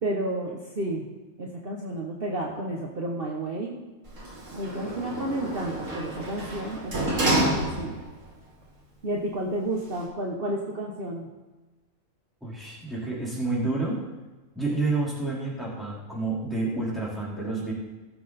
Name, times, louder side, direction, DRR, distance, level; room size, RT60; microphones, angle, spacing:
voice 1, 0.0-1.1 1.4-3.8 4.5-8.0 9.0-11.3, right 1 dB, 45° right, -1 dB, 1.4 m, -31 dB
Sliding door, 4.0-8.2 8.6-8.7, right 1 dB, 70° right, 2.6 m, -29 dB
voice 2, 12.4-14.0 14.5-17.7, right 3 dB, ahead, -7 dB, 4.0 m, -29 dB
16.5 x 7.3 x 4.3 m, 1.2 s
omnidirectional pair, 1.4 m